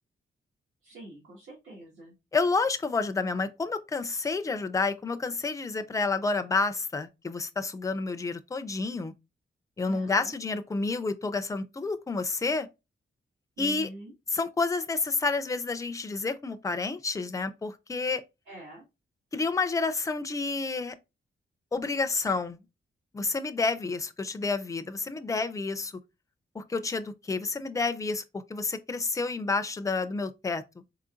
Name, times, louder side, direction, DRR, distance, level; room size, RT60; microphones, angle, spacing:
voice 1, 0.8-2.2 9.9-10.3 13.6-14.1 18.5-18.8, right 1 dB, 85° right, 1.7 m, -45 dB
voice 2, 2.3-9.1 9.8-12.7 13.6-13.9 14.3-18.2 19.3-21.0 21.7-22.6 23.1-25.9 26.5-28.2 28.5-30.6, left 3 dB, 15° left, 0.3 m, -29 dB
4.1 x 3.8 x 2.4 m
wide cardioid pair, 155°, 20 cm